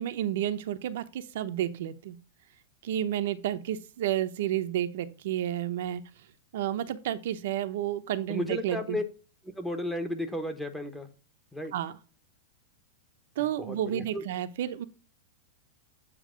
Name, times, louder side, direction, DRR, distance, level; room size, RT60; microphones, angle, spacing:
voice 1, 0.0-2.2 2.8-6.0 6.5-9.0 11.7-11.9 13.4-14.9, right 11 dB, 65° right, 9 dB, 0.7 m, -31 dB
voice 2, 8.3-9.0 9.6-11.1 11.5-11.7 13.6-14.2, left 1 dB, 5° left, 7 dB, 0.9 m, -33 dB
8.3 x 2.9 x 5.0 m, 0.35 s
supercardioid pair, 150°, 0 cm